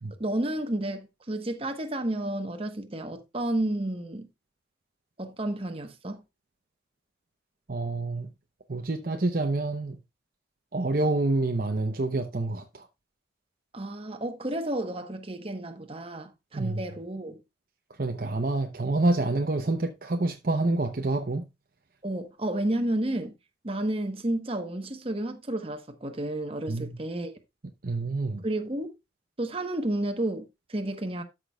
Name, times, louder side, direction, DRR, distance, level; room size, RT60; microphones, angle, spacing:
voice 1, 0.2-4.3 5.2-6.2 13.7-17.4 22.0-23.3 23.6-27.3 28.4-28.9 29.4-31.2, right 1 dB, 30° right, 1.1 m, -31 dB
voice 2, 7.7-8.3 8.7-10.0 10.7-12.9 16.5-16.8 18.0-21.5 26.7-27.0 27.8-28.4, right 2 dB, 50° right, 0.7 m, -27 dB
13.0 x 6.0 x 2.3 m
head